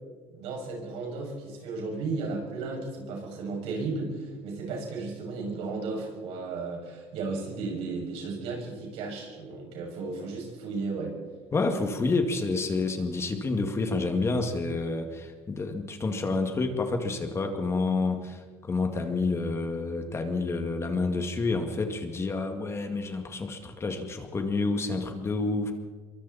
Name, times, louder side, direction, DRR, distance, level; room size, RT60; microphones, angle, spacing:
voice 1, 0.3-11.2, right 3 dB, 85° right, 0 dB, 6.9 m, -34 dB
voice 2, 11.5-25.7, left 3 dB, 25° left, 5 dB, 2.2 m, -29 dB
27.0 x 23.5 x 4.3 m, 1.5 s
cardioid pair, 125°, 10 cm